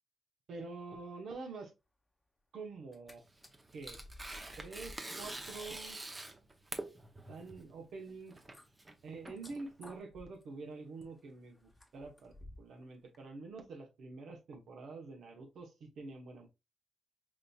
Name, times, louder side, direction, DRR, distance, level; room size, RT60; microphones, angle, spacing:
voice 1, 0.5-1.7 2.5-3.2 3.7-4.0 4.6-6.0 7.3-8.4 9.0-16.5, right 3 dB, 80° right, 1.0 m, -47 dB
sound 1, 2.8-3.1 3.4-12.8 13.1-13.2, left 1 dB, 10° left, 0.8 m, -57 dB
Tearing, 3.2-10.0, right 2 dB, 25° right, 0.7 m, -46 dB
5.0 x 2.7 x 2.3 m
cardioid pair, 90°, 0 cm